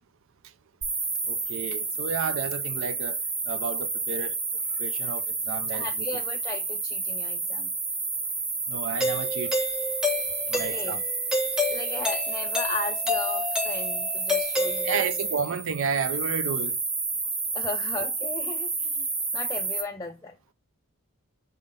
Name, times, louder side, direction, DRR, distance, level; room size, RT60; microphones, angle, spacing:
sound 1, 0.8-19.8, right 4 dB, 30° right, 1.8 m, -30 dB
voice 1, 1.3-3.2 3.5-4.3 4.8-6.1 8.7-9.5 10.4-11.0 14.8-16.8, right 6 dB, 60° right, 0.5 m, -31 dB
voice 2, 5.7-7.7 10.5-11.0 11.7-15.2 17.5-19.1 19.3-20.3, left 3 dB, 15° left, 0.4 m, -36 dB
Doorbell, 9.0-15.3, left 2 dB, 5° right, 0.9 m, -30 dB
5.2 x 3.7 x 5.0 m
head